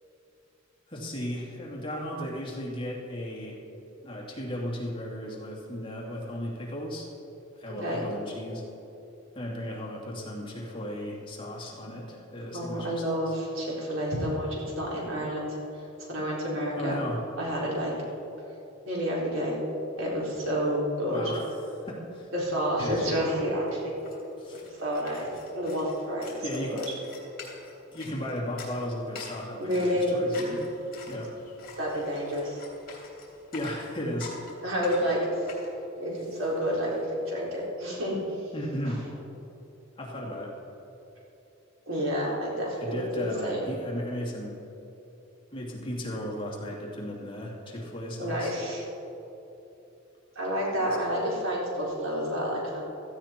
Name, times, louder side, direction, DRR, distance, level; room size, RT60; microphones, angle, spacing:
voice 1, 0.9-3.6 4.0-7.1 7.6-8.6 9.3-13.4 16.8-17.2 21.1-21.5 21.9-22.3 22.8-23.2 24.4-24.6 26.4-26.8 27.9-30.6 31.1-31.3 33.5-34.3 38.5-39.0 40.0-40.5 42.8-44.6 45.5-48.5 51.0-51.2, equal, 25° left, -3 dB, 2.5 m, -35 dB
voice 2, 12.5-15.6 16.1-17.0 17.4-17.9 18.9-19.6 20.0-21.2 22.3-23.9 24.7-26.8 29.6-30.1 31.8-32.6 34.6-35.6 36.0-36.9 37.3-38.2 38.8-38.9 41.9-43.7 48.2-48.8 50.4-52.8, equal, 80° right, -5 dB, 4.2 m, -29 dB
sound 1, 23.2-23.3 23.5-37.3, left 4 dB, 45° left, 3.1 m, -47 dB
16.0 x 14.5 x 4.5 m, 3.0 s
head